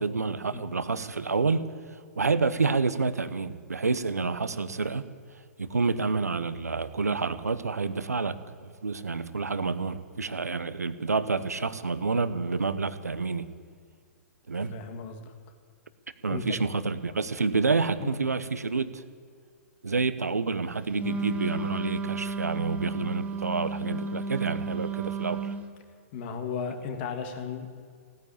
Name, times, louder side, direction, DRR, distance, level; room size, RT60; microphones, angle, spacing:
voice 1, 0.0-1.7 2.2-5.0 5.6-13.5 14.5-14.8 16.2-19.0 19.8-25.5, right 4 dB, 85° right, 13 dB, 1.0 m, -28 dB
voice 2, 14.7-15.3 16.3-16.6 18.0-18.1 26.1-27.7, left 6 dB, 45° left, 5 dB, 2.3 m, -35 dB
Wind instrument woodwind instrument, 20.9-25.7, right 3 dB, 15° right, 1.1 m, -33 dB
17.0 x 9.6 x 8.6 m, 2.1 s
hypercardioid pair, 120°, 8 cm